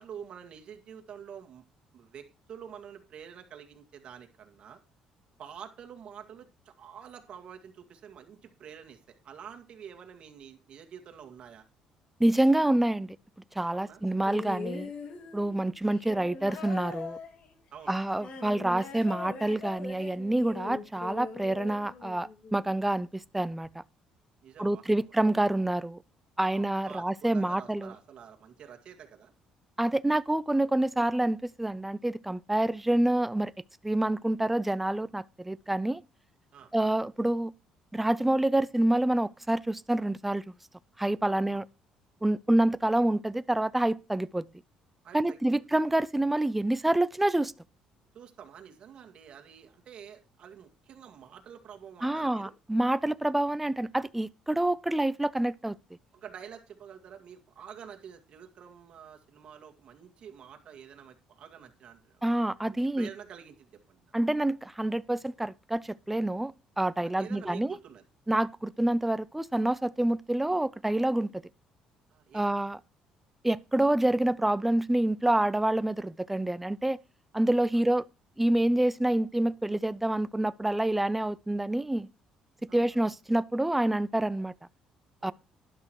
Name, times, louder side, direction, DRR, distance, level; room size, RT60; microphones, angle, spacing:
voice 1, 0.0-1.6 1.9-4.8 5.4-11.6 13.7-14.0 17.7-18.0 24.4-25.1 26.5-29.3 36.5-36.7 41.3-41.6 45.0-45.4 48.1-52.5 56.1-62.2 62.7-64.1 67.0-68.0 72.1-72.8 77.7-77.8 82.7-83.1 85.2-85.3, right 8 dB, 50° right, 2.1 m, -48 dB
voice 2, 12.2-13.2 13.6-14.9 15.3-17.2 17.9-23.1 23.3-23.7 24.6-26.0 26.4-27.9 29.8-33.5 33.8-36.0 36.7-37.5 37.9-40.4 41.0-41.6 42.2-44.4 45.1-47.5 52.0-55.8 62.2-63.1 64.1-67.8 68.3-71.3 72.3-72.8 73.4-77.0 77.3-78.1 78.4-82.1 82.7-84.5 85.2-85.3, right 1 dB, 5° right, 0.5 m, -27 dB
sound 1, 14.2-22.6 23.6-23.7, left 4 dB, 55° left, 2.2 m, -42 dB
12.0 x 10.5 x 3.1 m
cardioid pair, 105°, 2 cm